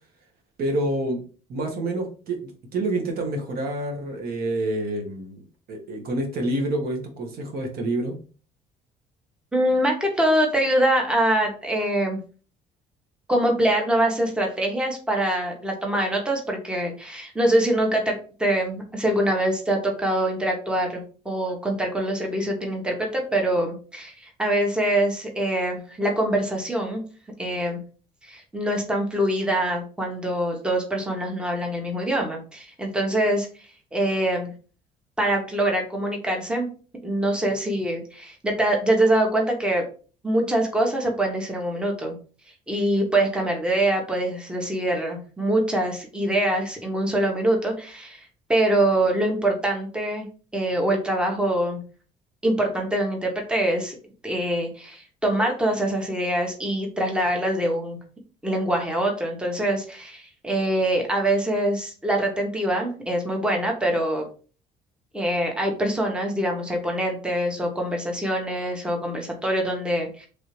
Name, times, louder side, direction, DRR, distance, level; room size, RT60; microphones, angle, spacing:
voice 1, 0.6-1.2 1.5-8.1, right 1 dB, 65° right, 2 dB, 1.0 m, -28 dB
voice 2, 9.5-12.2 13.3-18.1 18.4-27.0 27.4-27.8 28.2-33.5 33.9-34.5 35.2-36.7 37.0-39.8 40.2-42.1 42.7-50.3 50.5-51.8 52.4-54.0 54.2-58.0 58.4-64.2 65.1-70.3, right 1 dB, 5° right, 1 dB, 0.9 m, -24 dB
3.3 x 2.6 x 3.0 m, 0.38 s
cardioid pair, 110°, 17 cm